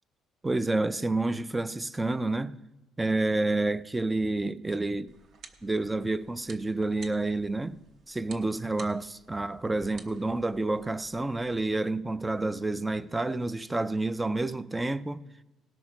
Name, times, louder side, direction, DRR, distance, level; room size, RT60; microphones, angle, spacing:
voice 1, 0.4-2.6 3.0-5.1 5.6-7.8 8.1-15.2, right 2 dB, 10° right, 0.3 m, -29 dB
Radio Switch Dead Battery, 5.1-11.6, right 4 dB, 45° right, 1.0 m, -53 dB
18.0 x 6.2 x 4.8 m
cardioid pair, 165°, 0 cm